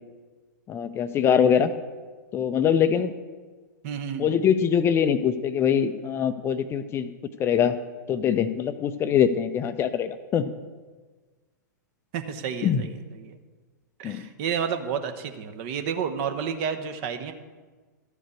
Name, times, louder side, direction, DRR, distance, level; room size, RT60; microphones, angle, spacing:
voice 1, 0.7-1.7 2.3-3.1 4.2-7.1 7.4-7.8 8.1-10.5 12.6-12.8 14.0-14.2, left 8 dB, 25° left, 10 dB, 0.5 m, -23 dB
voice 2, 3.8-4.4 12.1-13.4 14.0-17.3, right 7 dB, 45° right, 7 dB, 1.0 m, -31 dB
12.5 x 5.1 x 8.2 m, 1.4 s
figure-of-eight pair, 100°, 10 cm